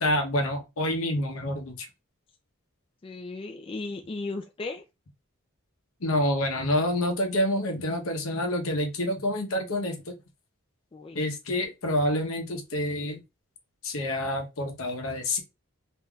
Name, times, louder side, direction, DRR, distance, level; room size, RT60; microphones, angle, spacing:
voice 1, 0.0-1.9 6.0-10.1 11.1-13.2 13.8-15.4, left 1 dB, 75° left, 0.8 m, -27 dB
voice 2, 3.0-4.8 10.9-11.2, left 3 dB, 25° left, 0.3 m, -36 dB
3.5 x 2.7 x 2.2 m
head